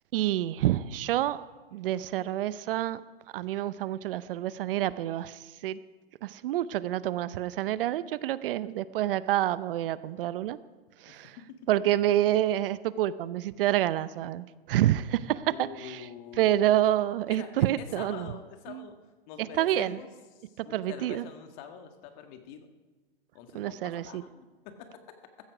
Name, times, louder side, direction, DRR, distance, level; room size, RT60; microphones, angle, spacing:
voice 1, 0.1-1.4 1.7-3.0 3.3-5.8 6.2-10.6 11.0-11.4 11.7-16.1 16.4-18.3 18.7-18.8 19.4-20.0 20.6-21.3 23.5-24.2, right 13 dB, 65° right, 16 dB, 0.7 m, -28 dB
voice 2, 11.1-11.7 15.5-16.5 17.3-17.5 17.8-19.0 19.3-20.1 20.4-22.7 23.3-24.9, left 8 dB, 45° left, 6 dB, 1.9 m, -45 dB
15.5 x 13.5 x 4.9 m, 1.3 s
hypercardioid pair, 125°, 31 cm